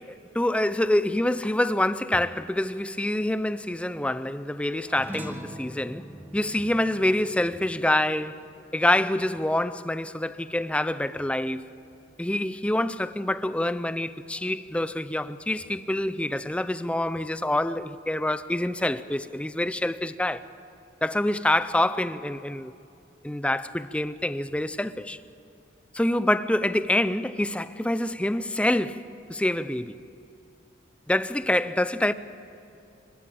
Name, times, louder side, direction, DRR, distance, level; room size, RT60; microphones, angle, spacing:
voice 1, 0.3-6.1 6.3-8.4 8.7-11.7 12.2-20.4 21.0-22.7 23.2-25.2 25.9-29.9 31.1-32.1, left 1 dB, 5° left, 0.4 m, -26 dB
sound 1, 4.9-9.5, equal, 10° right, 1.3 m, -43 dB
25.0 x 15.0 x 8.9 m
head